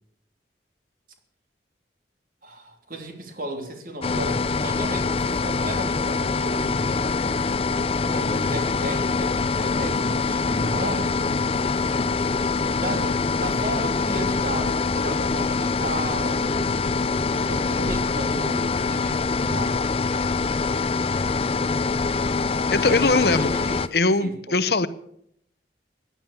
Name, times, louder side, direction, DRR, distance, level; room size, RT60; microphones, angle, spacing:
voice 1, 2.4-7.1 8.1-11.3 12.8-19.9 22.8-24.6, right 1 dB, 50° right, 5 dB, 3.2 m, -34 dB
sound 1, 4.0-23.9, left 4 dB, 35° left, 0.6 m, -24 dB
voice 2, 22.7-23.5 23.9-24.9, left 3 dB, 65° left, 14 dB, 0.9 m, -21 dB
16.5 x 10.5 x 7.1 m, 0.70 s
head